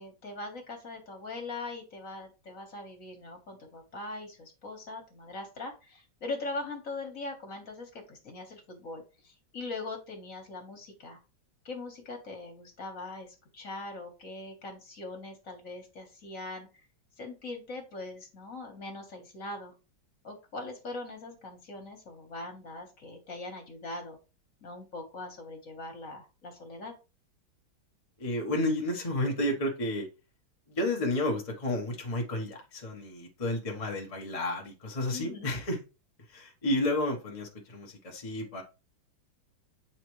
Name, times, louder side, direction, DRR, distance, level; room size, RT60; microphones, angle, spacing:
voice 1, 0.0-11.2 11.6-16.7 17.2-19.7 20.2-24.2 24.6-26.9 35.1-35.5, left 2 dB, 45° left, 3 dB, 1.7 m, -41 dB
voice 2, 28.2-30.1 30.7-35.8 36.3-38.6, left 1 dB, 25° left, 0 dB, 0.9 m, -31 dB
8.2 x 4.2 x 3.1 m, 0.30 s
omnidirectional pair, 2.2 m